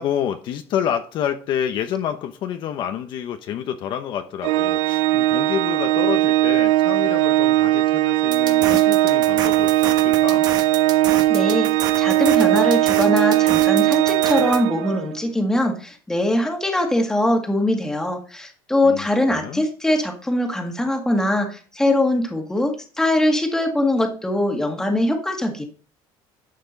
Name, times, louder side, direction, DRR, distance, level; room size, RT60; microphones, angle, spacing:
voice 1, 0.0-10.5 18.8-19.7, left 9 dB, 50° left, 7 dB, 0.9 m, -28 dB
Organ, 4.4-15.2, right 16 dB, 80° right, 0.5 m, -18 dB
sound 1, 8.3-14.6, right 8 dB, 40° right, 1.3 m, -30 dB
voice 2, 11.3-11.7 12.0-25.6, left 1 dB, 5° left, 3 dB, 1.9 m, -22 dB
11.5 x 8.0 x 3.9 m, 0.39 s
cardioid pair, 160°, 10 cm